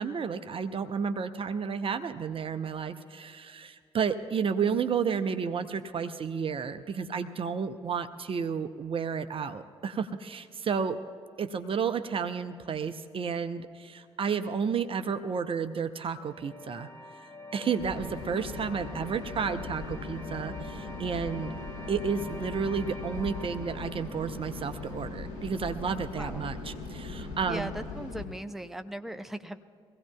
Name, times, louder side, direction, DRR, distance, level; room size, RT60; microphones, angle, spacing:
voice 1, 0.0-11.0 11.4-16.9 17.5-21.5 21.9-27.7, right 6 dB, 40° right, 9 dB, 0.7 m, -31 dB
sound 1, 15.7-26.8, left 1 dB, 15° left, 1.8 m, -47 dB
sound 2, 17.8-28.3, left 3 dB, 85° left, 2.1 m, -39 dB
voice 2, 26.2-26.5 27.5-29.6, right 1 dB, ahead, 7 dB, 0.8 m, -38 dB
23.5 x 16.5 x 2.3 m, 2.4 s
figure-of-eight pair, 45°, 15 cm